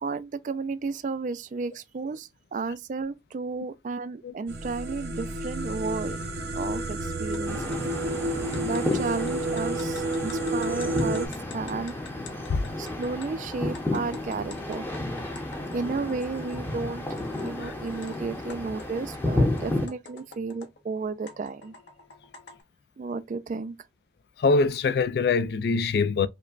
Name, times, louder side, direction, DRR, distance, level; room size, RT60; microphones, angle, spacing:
voice 1, 0.0-6.2 6.5-7.8 8.6-12.0 12.8-14.9 15.7-17.0 17.4-21.7 23.0-23.8, right 4 dB, 45° right, 0.3 m, -33 dB
sound 1, 4.5-11.3, right 2 dB, 70° right, 0.7 m, -30 dB
sound 2, 7.3-7.4 7.7-16.7 17.1-18.2 18.5-20.8 21.3-22.6, left 4 dB, 85° left, 0.8 m, -48 dB
sound 3, 7.5-19.9, left 1 dB, 10° left, 0.7 m, -32 dB
voice 2, 24.4-26.3, left 4 dB, 60° left, 0.3 m, -24 dB
5.0 x 2.2 x 2.4 m
head